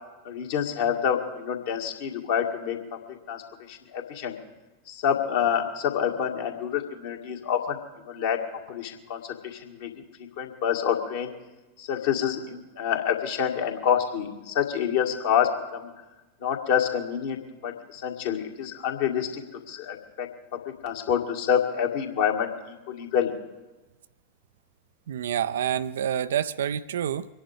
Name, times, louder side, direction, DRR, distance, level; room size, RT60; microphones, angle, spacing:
voice 1, 0.2-2.8 3.3-3.4 3.7-4.4 4.9-7.8 8.1-8.4 8.7-9.9 10.4-11.3 11.8-15.9 16.4-20.3 20.7-22.5 22.9-23.3, left 8 dB, 55° left, 2 dB, 2.0 m, -27 dB
voice 2, 25.1-27.3, right 9 dB, 60° right, 14 dB, 0.5 m, -27 dB
24.0 x 10.5 x 4.9 m, 1.1 s
figure-of-eight pair, 90°, 0 cm